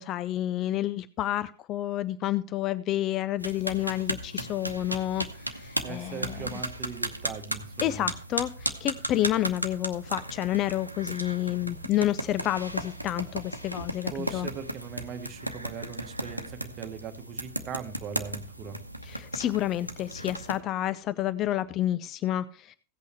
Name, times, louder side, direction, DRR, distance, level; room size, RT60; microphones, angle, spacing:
voice 1, 0.0-6.5 7.8-14.5 19.0-22.8, left 13 dB, 35° left, 16 dB, 0.4 m, -29 dB
sound 1, 3.4-20.6, right 1 dB, 85° right, 0.8 m, -36 dB
voice 2, 5.8-8.1 14.1-18.8, right 6 dB, 30° right, 7 dB, 1.2 m, -40 dB
16.0 x 8.3 x 3.1 m, 0.42 s
figure-of-eight pair, 90°, 0 cm